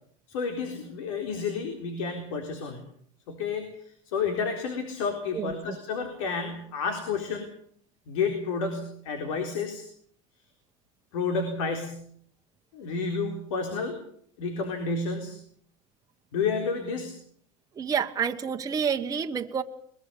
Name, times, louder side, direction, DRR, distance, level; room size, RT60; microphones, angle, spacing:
voice 1, 0.3-2.8 3.3-7.5 8.1-9.9 11.1-12.1 12.7-14.0 14.4-15.4 16.3-17.2, left 5 dB, 90° left, 5 dB, 4.0 m, -30 dB
voice 2, 5.3-5.8 17.8-19.6, right 7 dB, 20° right, 4 dB, 1.2 m, -29 dB
22.0 x 21.5 x 7.0 m, 0.63 s
supercardioid pair, 135°, 16 cm